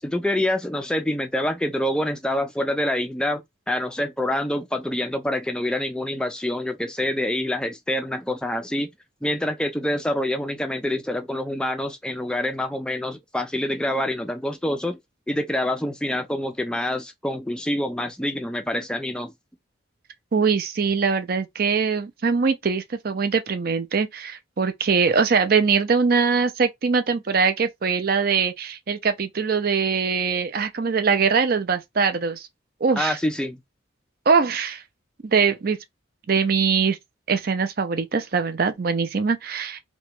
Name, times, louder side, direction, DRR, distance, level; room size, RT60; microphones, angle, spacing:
voice 1, 0.0-3.4 3.7-8.9 9.2-15.0 15.3-19.3 33.0-33.6, left 1 dB, 5° left, 0.3 m, -26 dB
voice 2, 20.3-32.5 32.8-33.2 34.3-34.8 35.2-35.8 36.3-37.0 37.3-39.8, right 5 dB, 50° right, 0.5 m, -22 dB
3.0 x 2.2 x 3.0 m
head